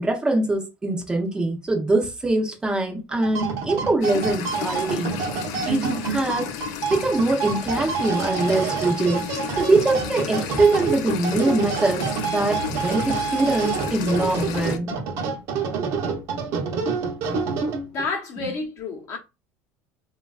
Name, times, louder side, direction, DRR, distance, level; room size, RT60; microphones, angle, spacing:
voice 1, 0.0-5.2 5.7-6.5 6.9-9.2 9.6-14.9 18.4-18.5, right 2 dB, 10° right, 0.5 m, -23 dB
sound 1, 3.1-18.1, right 6 dB, 55° right, 0.7 m, -28 dB
sound 2, 4.0-14.8, left 9 dB, 65° left, 0.4 m, -33 dB
voice 2, 17.8-19.2, left 3 dB, 50° left, 0.8 m, -30 dB
3.3 x 2.2 x 2.3 m
cardioid pair, 150°, 6 cm